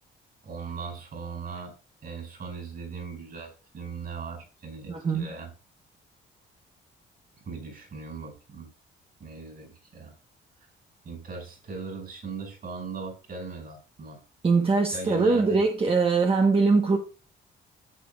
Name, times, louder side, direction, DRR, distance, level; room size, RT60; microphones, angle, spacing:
voice 1, 0.4-1.7 2.0-5.5 7.5-8.7 9.2-10.2 11.0-14.2 14.9-15.6, right 5 dB, 50° right, 5.2 m, -39 dB
voice 2, 4.9-5.3 14.4-17.0, right 4 dB, 30° right, 1.2 m, -22 dB
12.0 x 7.6 x 2.4 m
cardioid pair, 90°, 20 cm